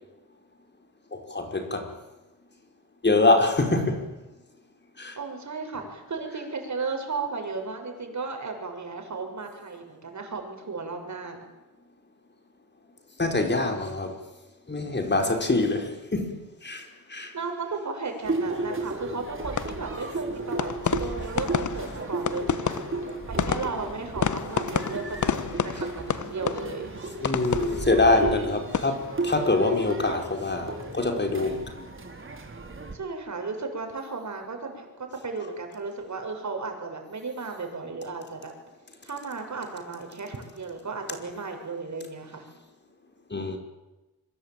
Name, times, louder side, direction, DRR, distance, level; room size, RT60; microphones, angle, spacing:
voice 1, 1.1-1.9 3.0-4.2 5.0-5.2 13.2-14.2 14.7-17.3 27.2-31.7 43.3-43.6, left 2 dB, 30° left, 5.1 m, -25 dB
voice 2, 5.2-11.5 17.3-20.7 21.0-22.8 23.3-26.9 32.9-38.5 39.0-42.5, right 4 dB, 55° right, 6.9 m, -35 dB
sound 1, 18.2-32.9, right 2 dB, 35° right, 4.0 m, -34 dB
sound 2, 19.4-30.5 30.8-31.3, left 7 dB, 60° left, 1.4 m, -31 dB
26.0 x 23.5 x 9.2 m
cardioid pair, 75°, 34 cm